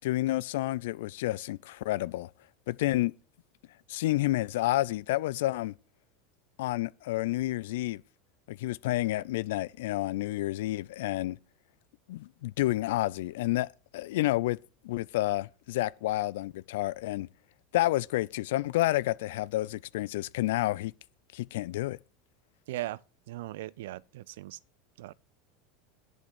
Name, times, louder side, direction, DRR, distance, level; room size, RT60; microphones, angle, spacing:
voice 1, 0.0-2.3 2.7-3.1 3.9-5.7 6.6-8.0 8.5-11.4 12.1-14.6 14.8-17.3 17.7-20.9 21.3-22.0, left 16 dB, 70° left, 0.4 m, -29 dB
voice 2, 22.7-23.0 23.3-24.6 25.0-25.1, right 16 dB, 70° right, 0.4 m, -38 dB
10.5 x 5.3 x 8.1 m
hypercardioid pair, 85°, 0 cm